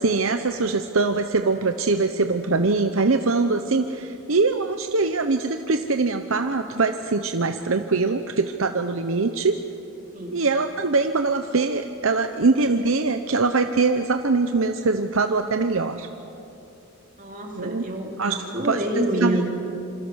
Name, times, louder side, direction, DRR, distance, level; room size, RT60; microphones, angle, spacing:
voice 1, 0.0-9.6 10.3-16.1 17.6-17.9 18.2-18.3 18.6-19.4, right 3 dB, 70° right, 7 dB, 0.9 m, -23 dB
voice 2, 17.2-19.4, right 1 dB, 35° right, 1 dB, 3.3 m, -27 dB
27.0 x 26.5 x 6.4 m, 2.9 s
head